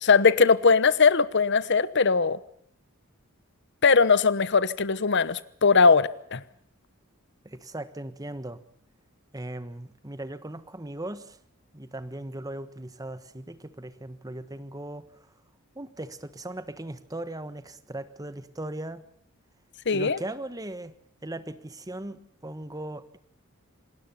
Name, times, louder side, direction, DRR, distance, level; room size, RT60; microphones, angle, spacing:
voice 1, 0.0-2.4 3.8-6.4 19.9-20.2, left 5 dB, 55° left, 1.0 m, -20 dB
voice 2, 7.4-8.6 9.3-11.4 11.7-15.1 15.7-19.1 19.9-20.9 21.2-23.2, right 1 dB, 15° right, 1.3 m, -38 dB
27.5 x 19.5 x 5.7 m
head